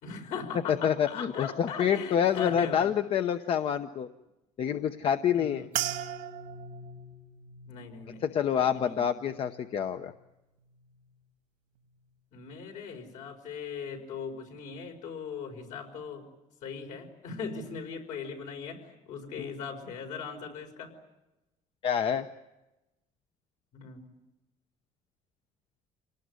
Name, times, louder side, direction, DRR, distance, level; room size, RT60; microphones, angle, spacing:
voice 1, 0.0-2.9 5.3-5.7 7.6-8.3 8.5-9.1 12.3-16.3 16.6-20.9 23.7-24.0, left 6 dB, 70° left, 3 dB, 5.2 m, -39 dB
voice 2, 0.7-4.1 4.6-5.6 8.2-10.1 21.8-22.3, left 8 dB, 45° left, 9 dB, 0.8 m, -27 dB
sound 1, 5.7-10.3 10.6-11.2 11.8-12.1, right 10 dB, 85° right, 1.7 m, -40 dB
27.0 x 19.0 x 9.5 m, 0.99 s
cardioid pair, 155°, 13 cm